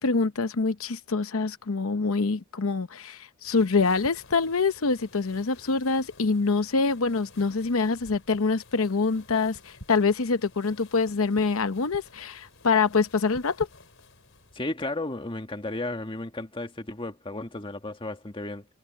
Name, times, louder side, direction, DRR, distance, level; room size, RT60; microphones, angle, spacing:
voice 1, 0.0-13.7, left 4 dB, 80° left, 0.8 m, -25 dB
sound 1, 3.4-14.6, left 2 dB, 65° left, 4.9 m, -51 dB
voice 2, 14.5-18.7, left 2 dB, 25° left, 1.7 m, -34 dB
head